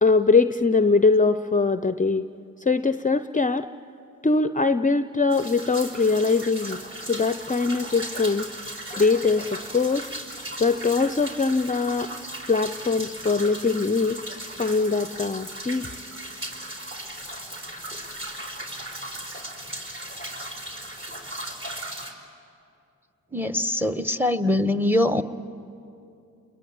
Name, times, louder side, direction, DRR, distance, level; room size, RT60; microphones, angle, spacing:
voice 1, 0.0-2.3 2.6-3.7 4.2-8.5 8.9-10.1 10.6-12.1 12.5-14.2 14.6-16.0, left 4 dB, 20° left, 12 dB, 0.6 m, -22 dB
sound 1, 5.3-22.1, right 1 dB, 35° right, 5.0 m, -37 dB
voice 2, 23.3-25.2, left 1 dB, 5° right, 12 dB, 1.2 m, -23 dB
29.0 x 22.0 x 8.8 m, 2.6 s
supercardioid pair, 40°, 36 cm